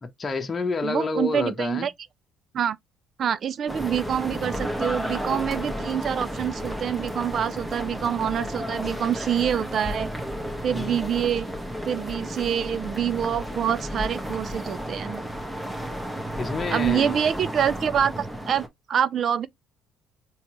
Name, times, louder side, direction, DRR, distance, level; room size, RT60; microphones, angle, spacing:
voice 1, 0.0-1.9 10.7-11.0 16.4-17.2, left 3 dB, 30° left, 1.0 m, -29 dB
voice 2, 0.8-1.9 2.5-2.8 3.2-10.1 10.6-11.5 11.9-15.2 16.7-19.5, right 8 dB, 50° right, 0.5 m, -26 dB
sound 1, 3.7-18.7, equal, 10° right, 1.2 m, -32 dB
4.3 x 3.0 x 3.0 m
supercardioid pair, 80°, 0 cm